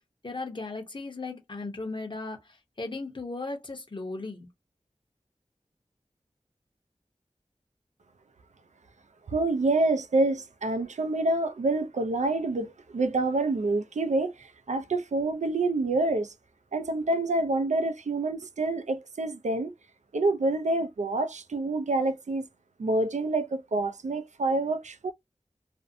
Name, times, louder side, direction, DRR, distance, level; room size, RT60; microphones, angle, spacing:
voice 1, 0.2-4.5, left 3 dB, 40° left, 0.8 m, -36 dB
voice 2, 9.3-16.3 16.7-19.7 20.1-22.5 22.8-25.1, right 2 dB, 75° right, 0.4 m, -27 dB
2.5 x 2.0 x 2.5 m
wide cardioid pair, 60°, 12 cm